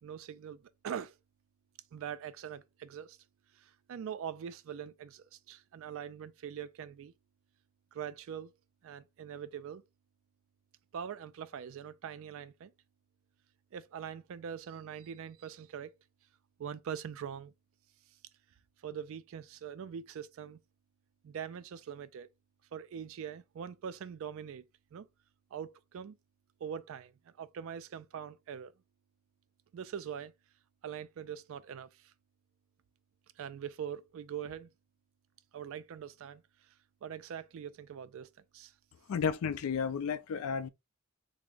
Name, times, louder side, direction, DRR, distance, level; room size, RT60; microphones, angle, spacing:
voice 1, 0.0-1.2 1.9-3.2 3.5-7.1 7.9-8.5 8.8-9.8 10.9-12.7 13.7-16.0 16.6-17.5 18.8-20.6 21.2-22.3 22.7-24.6 24.9-25.1 25.5-26.2 26.6-28.7 29.7-30.3 30.8-32.1 33.4-34.7 35.5-36.7 37.0-38.7, right 8 dB, 65° right, 0.3 m, -43 dB
voice 2, 39.1-40.7, left 6 dB, 80° left, 0.4 m, -32 dB
3.4 x 2.0 x 3.7 m
head